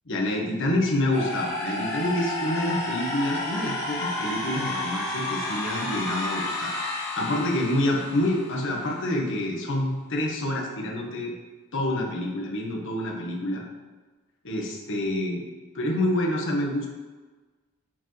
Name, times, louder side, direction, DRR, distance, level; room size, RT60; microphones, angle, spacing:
voice 1, 0.1-6.8 7.2-11.3 11.7-13.6 14.4-15.4 15.7-16.9, left 1 dB, 60° left, -1 dB, 1.3 m, -27 dB
sound 1, 1.1-9.0, left 1 dB, 15° left, 2.0 m, -31 dB
9.9 x 4.7 x 3.2 m, 1.3 s
head